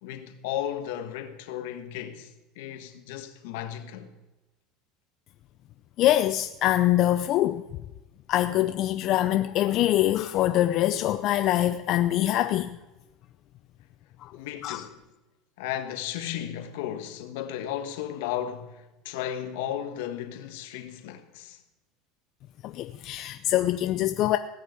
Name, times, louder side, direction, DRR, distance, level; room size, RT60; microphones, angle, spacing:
voice 1, 0.0-4.1 14.3-15.0 15.6-21.6, left 10 dB, 80° left, 1.5 m, -35 dB
voice 2, 6.0-7.6 8.3-12.7 14.2-14.3 14.6-14.9 22.6-24.4, left 13 dB, 55° left, 0.6 m, -24 dB
18.0 x 6.4 x 8.3 m
supercardioid pair, 115°, 0 cm